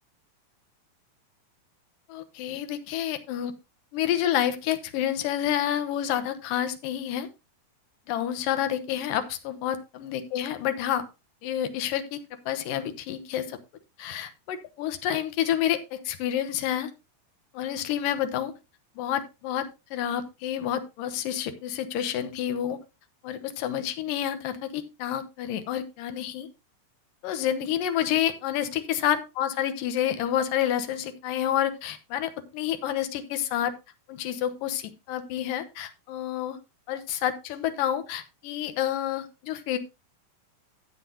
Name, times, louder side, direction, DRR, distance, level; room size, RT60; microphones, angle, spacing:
voice 1, 2.1-3.5 3.9-7.3 8.1-11.0 11.4-12.2 12.5-13.6 14.0-16.9 17.5-18.5 19.0-22.8 23.2-26.5 27.2-33.7 34.1-36.6 36.9-39.8, left 10 dB, 75° left, 9 dB, 2.5 m, -29 dB
13.5 x 8.3 x 2.7 m, 0.25 s
omnidirectional pair, 4.3 m